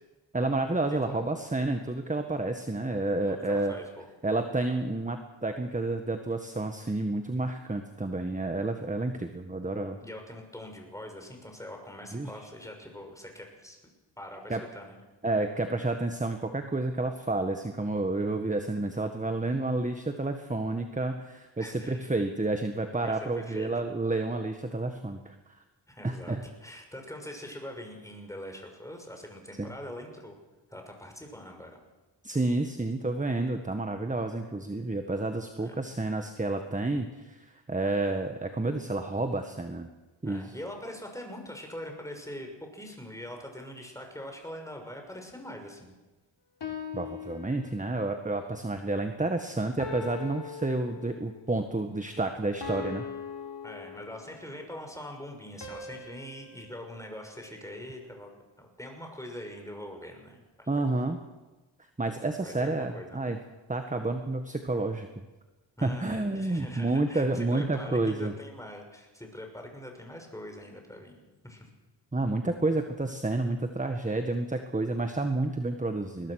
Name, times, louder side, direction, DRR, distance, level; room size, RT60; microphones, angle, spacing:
voice 1, 0.3-3.7 4.2-10.0 12.1-12.3 14.5-14.6 15.2-25.3 26.0-26.4 29.6-29.7 32.2-39.9 40.2-40.5 46.9-53.1 60.7-61.2 62.0-63.4 63.7-65.1 65.8-68.3 72.1-76.3, right 2 dB, 15° right, 6 dB, 1.6 m, -30 dB
voice 2, 3.1-4.1 10.0-13.8 14.2-15.0 21.6-22.1 23.0-23.7 25.9-30.4 30.7-31.8 35.6-35.8 40.2-45.9 53.6-58.3 58.6-60.7 62.4-63.2 65.8-71.7, left 1 dB, 5° left, 3 dB, 6.1 m, -43 dB
sound 1, 46.6-48.2 49.8-51.4 52.6-54.5 55.6-57.9, left 6 dB, 65° left, 3.5 m, -41 dB
22.0 x 20.0 x 6.6 m, 1.2 s
cardioid pair, 70°, 45 cm